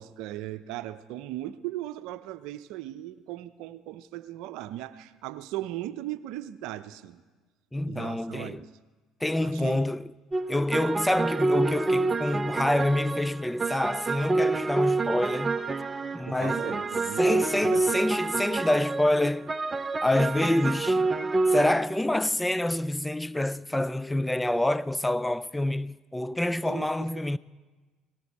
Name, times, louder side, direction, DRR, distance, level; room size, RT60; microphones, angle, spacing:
voice 1, 0.0-7.2 7.8-8.7 9.4-9.9 16.3-17.8 26.7-27.2, right 14 dB, 70° right, 0.6 m, -38 dB
voice 2, 7.7-8.6 9.2-10.1 10.5-15.6 16.1-16.8 17.2-19.5 20.0-21.1 21.5-27.4, left 1 dB, 10° left, 0.4 m, -27 dB
sound 1, 10.3-21.7, right 3 dB, 25° right, 0.7 m, -27 dB
18.5 x 17.5 x 4.2 m
hypercardioid pair, 60°, 0 cm